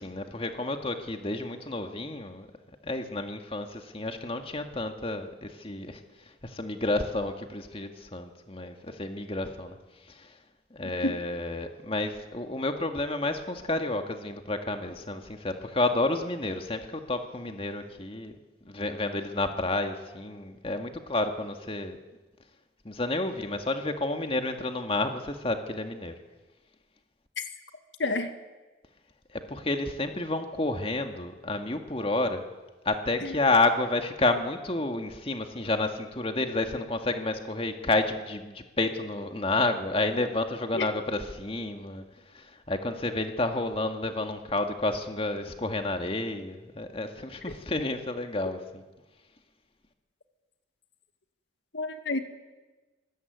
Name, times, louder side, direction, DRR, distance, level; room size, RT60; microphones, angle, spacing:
voice 1, 0.0-2.5 2.8-6.0 6.4-9.8 10.0-10.4 10.7-18.4 18.7-22.0 22.9-26.1 29.3-32.4 32.9-48.8, left 2 dB, 30° left, 6 dB, 1.9 m, -30 dB
voice 2, 10.8-11.2 28.0-28.3 33.2-33.4 40.7-40.9 51.7-52.2, left 2 dB, 75° left, 8 dB, 2.1 m, -30 dB
25.5 x 21.0 x 9.4 m, 1.2 s
head